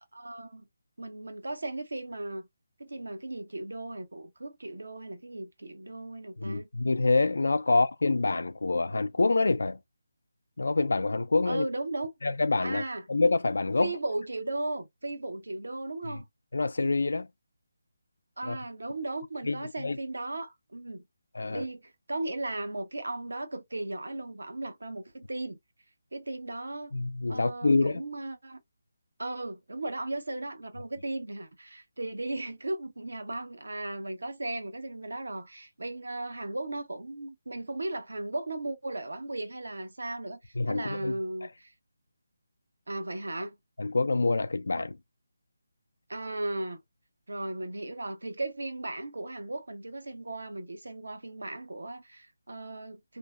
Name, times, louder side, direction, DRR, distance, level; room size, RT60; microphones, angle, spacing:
voice 1, 0.1-0.6 1.0-2.5 2.8-6.7 7.7-7.8 11.5-12.1 12.6-13.0 13.8-16.2 18.4-21.0 21.5-25.6 26.1-26.9 27.3-28.6 29.2-41.7 42.9-43.5 46.1-46.8 47.3-53.2, right 2 dB, 80° right, 0.7 m, -36 dB
voice 2, 6.4-9.8 10.6-11.6 12.2-12.8 13.1-13.9 16.1-16.2 16.5-17.3 18.4-18.6 19.5-20.0 21.3-21.6 26.9-28.0 40.6-41.1 43.8-45.0, left 3 dB, 70° left, 0.4 m, -26 dB
2.7 x 2.1 x 2.3 m
figure-of-eight pair, 160°, 0 cm